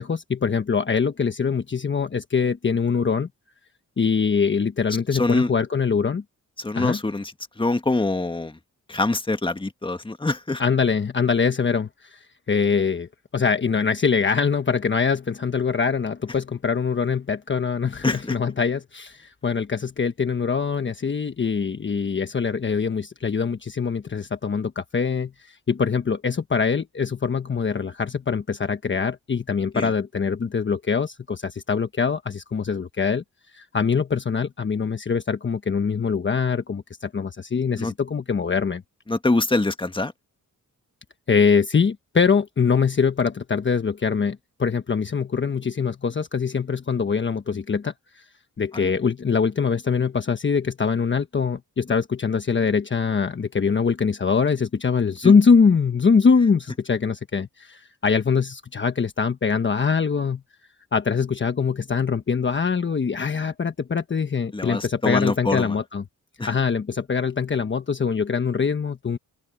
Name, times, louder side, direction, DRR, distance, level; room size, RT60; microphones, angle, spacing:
voice 1, 0.0-3.3 4.0-6.2 6.7-7.0 10.6-33.2 33.5-38.8 41.3-48.2 48.6-60.4 60.9-66.0 66.5-69.2, left 5 dB, 35° left, 1.1 m, -23 dB
voice 2, 5.1-5.5 6.6-7.3 7.6-8.6 8.9-10.6 18.0-18.2 29.7-29.9 37.8-37.9 39.1-40.1 48.7-48.9 55.2-55.3 64.5-65.7 66.4-66.5, left 2 dB, 15° left, 1.6 m, -24 dB
open air
cardioid pair, 90°, 33 cm